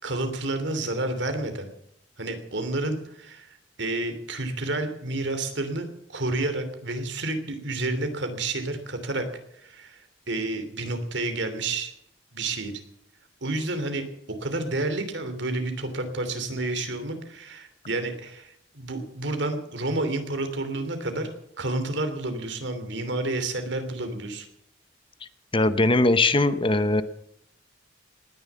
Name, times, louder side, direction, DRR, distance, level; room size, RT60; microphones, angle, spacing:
voice 1, 0.0-1.7 2.2-9.3 9.6-10.0 10.3-11.9 12.3-12.7 13.4-21.3 21.6-24.5, right 2 dB, 65° right, 7 dB, 3.0 m, -30 dB
voice 2, 25.5-27.0, left 2 dB, 30° left, 13 dB, 0.8 m, -20 dB
19.0 x 10.5 x 7.3 m, 0.71 s
head